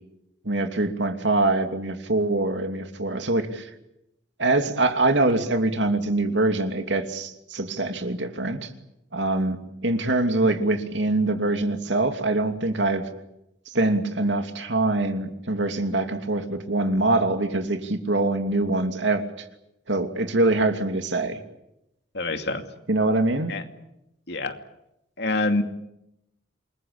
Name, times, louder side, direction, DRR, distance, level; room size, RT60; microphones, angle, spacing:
voice 1, 0.4-3.7 4.4-8.7 9.1-13.0 13.7-19.2 19.9-21.4 22.9-23.5, right 2 dB, 75° right, 7 dB, 2.8 m, -24 dB
voice 2, 22.1-22.6 23.5-23.6 24.3-24.6 25.2-25.6, left 2 dB, 60° left, 6 dB, 2.5 m, -25 dB
28.0 x 21.0 x 8.7 m, 0.85 s
head